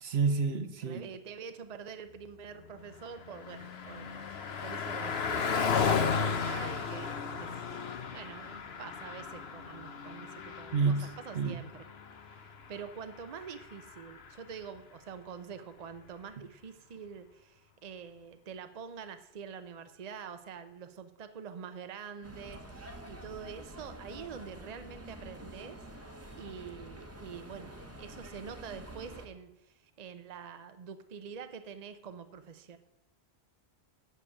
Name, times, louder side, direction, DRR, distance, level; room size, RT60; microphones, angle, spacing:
voice 1, 0.0-1.0 10.7-11.1 11.3-11.6, right 4 dB, 70° right, 9 dB, 1.1 m, -29 dB
voice 2, 0.8-11.9 12.3-25.8 26.3-32.8, right 6 dB, 45° right, 10 dB, 0.7 m, -46 dB
Car passing by, 2.7-14.5, left 6 dB, 70° left, 1.1 m, -35 dB
sound 1, 22.2-29.3, right 1 dB, 15° right, 1.1 m, -48 dB
8.4 x 6.8 x 8.5 m, 0.91 s
omnidirectional pair, 1.1 m